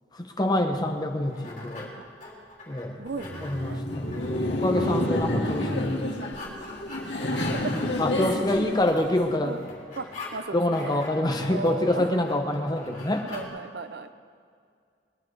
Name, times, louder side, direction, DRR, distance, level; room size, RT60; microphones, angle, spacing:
voice 1, 0.1-1.9 2.7-3.1 3.4-4.2 4.5-6.1 6.6-6.7 8.0-9.6 10.5-13.3, left 1 dB, 25° left, 4 dB, 1.2 m, -26 dB
sound 1, 0.8-13.5, left 2 dB, 45° left, 3.4 m, -44 dB
voice 2, 3.0-3.8 5.1-5.2 5.6-5.8 7.3-7.8 8.2-8.6 9.4-9.6 10.0-11.0 11.5-12.2 13.3-14.1, right 3 dB, 65° right, 10 dB, 0.7 m, -36 dB
Laughter, 3.1-9.4, left 1 dB, 80° left, 2.1 m, -29 dB
21.5 x 10.5 x 4.8 m, 2.2 s
head